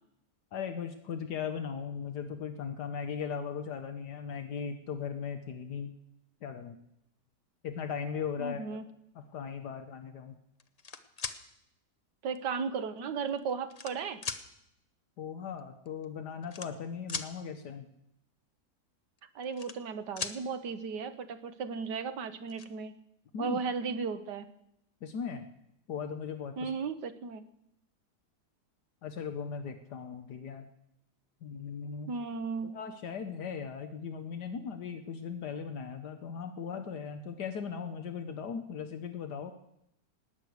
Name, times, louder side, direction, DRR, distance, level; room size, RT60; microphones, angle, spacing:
voice 1, 0.5-5.9 6.4-6.8 7.6-8.8 9.1-10.3 15.2-17.9 23.3-23.6 25.0-25.5 25.9-26.7 29.0-30.7 31.4-32.1 32.6-39.5, left 6 dB, 75° left, 8 dB, 1.5 m, -38 dB
voice 2, 8.4-8.8 12.2-14.2 19.3-22.9 23.4-24.5 26.6-27.4 32.1-32.7, right 5 dB, 80° right, 12 dB, 1.5 m, -35 dB
sound 1, 10.6-11.4 12.4-12.5 13.3-13.9 14.2-14.4 15.6-15.7 15.9-16.0 16.4-17.3 19.2-19.9 20.2-20.4 21.8-21.9 22.2-22.7, left 5 dB, 40° left, 0.5 m, -38 dB
19.0 x 6.5 x 9.4 m, 0.80 s
omnidirectional pair, 1.8 m